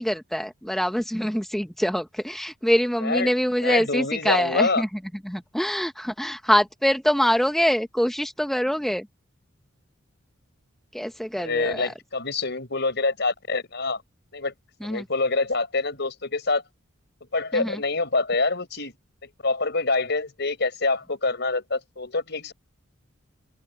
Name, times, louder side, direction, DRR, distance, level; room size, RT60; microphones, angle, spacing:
voice 1, 0.0-4.9 5.2-9.1 10.9-11.9 14.8-15.0 17.5-17.8, equal, ahead, 0.6 m, -24 dB
voice 2, 3.0-4.8 11.4-14.0 14.3-14.5 14.8-16.6 17.3-18.9 19.2-22.5, left 3 dB, 55° left, 5.5 m, -26 dB
open air
head